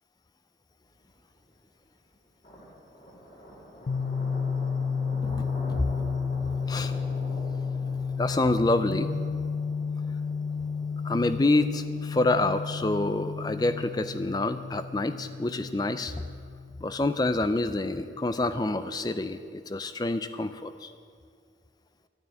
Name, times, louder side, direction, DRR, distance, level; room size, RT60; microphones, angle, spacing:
sound 1, 0.9-1.0 2.4-14.4, equal, 40° left, 3.3 m, -46 dB
sound 2, 3.9-17.5, left 5 dB, 90° left, 0.6 m, -32 dB
voice 1, 5.2-5.8 6.7-6.9 8.2-9.1 11.0-16.1 16.8-20.9, left 2 dB, 20° left, 11 dB, 0.4 m, -27 dB
12.0 x 9.3 x 9.6 m, 2.2 s
head